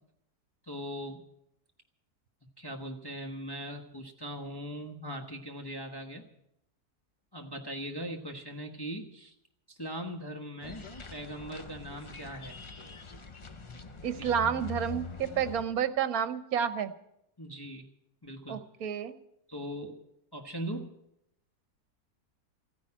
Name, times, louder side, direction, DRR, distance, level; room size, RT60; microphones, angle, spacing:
voice 1, 0.7-1.2 2.6-6.2 7.3-9.3 9.7-12.7 14.2-14.3 17.4-17.8 18.2-18.6 19.5-20.0 20.3-20.9, equal, 15° left, 1 dB, 1.1 m, -40 dB
sound 1, 10.6-15.6, left 5 dB, 50° left, 0.3 m, -43 dB
voice 2, 14.0-16.9 18.5-19.2, right 8 dB, 70° right, 12 dB, 1.4 m, -30 dB
14.5 x 10.5 x 8.6 m, 0.78 s
omnidirectional pair, 1.6 m